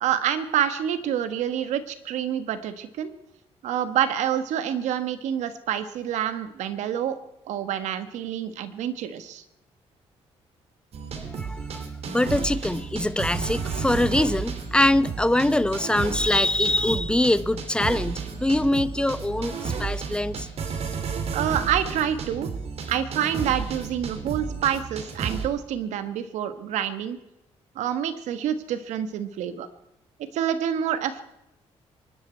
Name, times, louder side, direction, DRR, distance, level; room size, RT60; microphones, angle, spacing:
voice 1, 0.0-3.1 3.6-7.2 7.5-9.4 21.3-22.5 22.9-27.2 27.7-29.7 30.3-31.2, right 9 dB, 85° right, 11 dB, 1.4 m, -27 dB
sound 1, 10.9-25.5, right 5 dB, 60° right, 2.5 m, -32 dB
voice 2, 11.3-20.5, left 1 dB, 10° left, 15 dB, 0.8 m, -23 dB
24.5 x 12.0 x 4.5 m, 0.89 s
cardioid pair, 85°, 12 cm